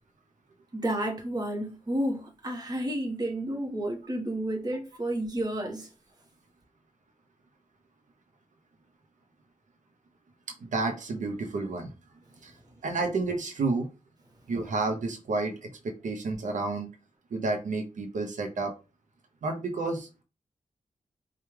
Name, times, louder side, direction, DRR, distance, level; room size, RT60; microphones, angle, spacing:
voice 1, 0.7-5.9, right 1 dB, 30° right, 1.1 m, -31 dB
voice 2, 10.6-11.9 12.4-12.6 12.8-13.9 14.5-16.9 17.3-18.7 19.4-20.2, right 3 dB, 75° right, 0.6 m, -30 dB
4.5 x 2.3 x 3.1 m
wide cardioid pair, 105°, 13 cm